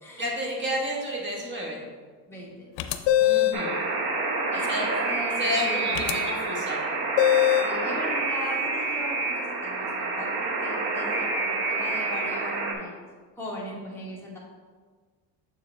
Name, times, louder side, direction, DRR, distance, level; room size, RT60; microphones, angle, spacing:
voice 1, 0.2-1.8 3.2-3.7 4.6-5.0 5.4-6.8, equal, 25° right, -2 dB, 1.3 m, -31 dB
voice 2, 2.3-2.7 4.5-6.2 7.6-12.9 13.4-14.4, equal, 5° left, -5 dB, 1.2 m, -38 dB
sound 1, 2.8-3.7 5.9-6.1 7.2-7.8, left 13 dB, 80° left, 0.6 m, -21 dB
Alarm, 3.5-12.7, right 3 dB, 55° right, 1.0 m, -28 dB
6.8 x 4.8 x 3.3 m, 1.5 s
cardioid pair, 160°, 44 cm